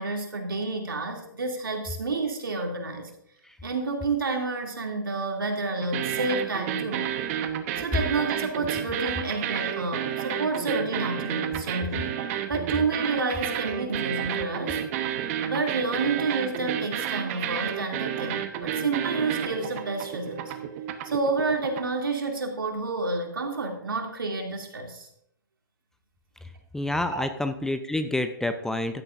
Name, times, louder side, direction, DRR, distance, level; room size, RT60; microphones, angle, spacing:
voice 1, 0.0-3.1 3.6-7.1 7.8-12.1 12.5-14.8 15.4-20.5 21.0-25.1 27.1-27.3, right 3 dB, 80° right, 1 dB, 2.7 m, -29 dB
sound 1, 5.8-22.0, right 10 dB, 40° right, 1.1 m, -31 dB
voice 2, 26.7-29.0, left 1 dB, 5° left, 8 dB, 0.6 m, -28 dB
15.5 x 12.0 x 2.6 m, 0.76 s
figure-of-eight pair, 120°, 11 cm